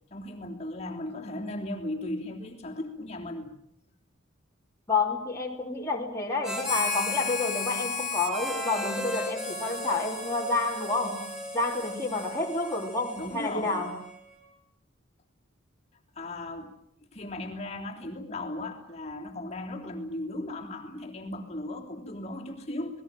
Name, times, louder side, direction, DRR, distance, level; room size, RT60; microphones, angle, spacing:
voice 1, 0.1-3.5 13.2-13.9 16.1-16.7 17.1-23.0, left 1 dB, 30° left, 0 dB, 3.2 m, -36 dB
voice 2, 4.9-11.3 11.5-14.0, left 3 dB, 15° left, -3 dB, 3.1 m, -29 dB
Harmonica, 6.4-14.2, left 2 dB, 5° right, 5.3 m, -34 dB
29.0 x 20.0 x 7.5 m, 0.70 s
head